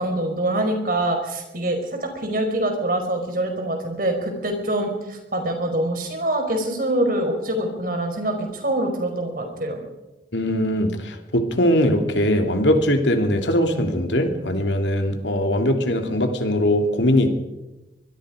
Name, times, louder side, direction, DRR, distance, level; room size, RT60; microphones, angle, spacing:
voice 1, 0.0-9.8, right 1 dB, 50° right, 4 dB, 5.0 m, -25 dB
voice 2, 10.3-17.3, left 1 dB, 80° left, 5 dB, 2.9 m, -21 dB
25.0 x 21.0 x 5.1 m, 1.0 s
head